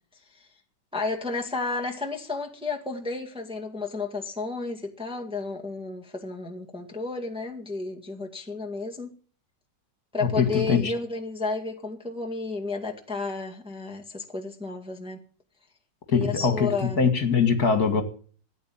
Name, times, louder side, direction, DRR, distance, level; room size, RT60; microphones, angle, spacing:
voice 1, 0.9-9.2 10.1-15.2 16.1-17.0, left 3 dB, 5° right, 1.8 m, -32 dB
voice 2, 10.4-10.9 16.1-16.7 17.0-18.0, left 5 dB, 55° left, 2.6 m, -22 dB
13.5 x 9.6 x 8.9 m
omnidirectional pair, 1.9 m